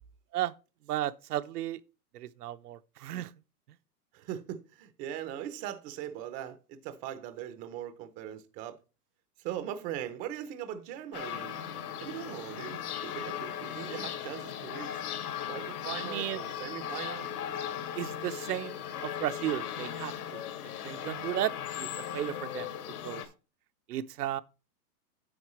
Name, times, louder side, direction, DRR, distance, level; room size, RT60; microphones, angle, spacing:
voice 1, 0.9-1.8 2.1-3.3 16.1-16.4 17.9-20.4 20.8-22.7 23.0-23.2 23.9-24.4, right 13 dB, 75° right, 0.9 m, -34 dB
voice 2, 4.1-8.8 9.4-11.6 12.0-15.0 15.5-17.3, right 10 dB, 20° right, 0.6 m, -40 dB
sound 1, 11.1-23.3, left 9 dB, 70° left, 2.3 m, -38 dB
9.6 x 8.0 x 3.1 m
hypercardioid pair, 155°, 46 cm